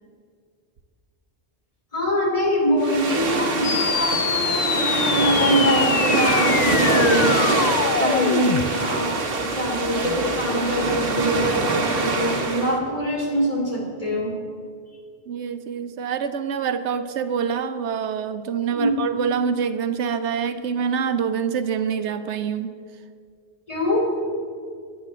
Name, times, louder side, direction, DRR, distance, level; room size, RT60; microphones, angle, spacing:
voice 1, 1.9-14.3 18.7-19.0 23.7-24.1, equal, 30° left, -3 dB, 3.2 m, -24 dB
sound 1, 2.8-12.8, right 3 dB, 55° right, 1.4 m, -24 dB
sound 2, 3.6-8.6, left 7 dB, 50° left, 0.6 m, -24 dB
voice 2, 15.3-22.7, right 7 dB, 85° right, 10 dB, 1.0 m, -26 dB
11.0 x 9.1 x 7.4 m, 2.2 s
omnidirectional pair, 1.1 m